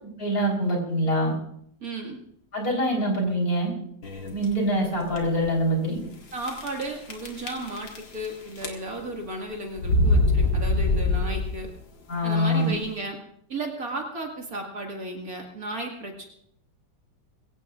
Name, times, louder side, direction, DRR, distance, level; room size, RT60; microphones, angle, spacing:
voice 1, 0.2-1.3 2.5-3.7 4.3-6.0 12.1-12.7, equal, 50° left, 0 dB, 4.6 m, -24 dB
voice 2, 1.8-2.2 6.3-11.7 12.2-13.2 13.5-16.3, right 2 dB, 50° right, 1 dB, 2.4 m, -34 dB
sound 1, 4.0-4.5 5.1-5.2 5.4-5.5 6.4-6.8 7.1-8.3 8.6-9.1 9.8-11.7, left 2 dB, 80° left, 2.6 m, -23 dB
22.5 x 16.0 x 2.5 m, 0.69 s
omnidirectional pair, 2.0 m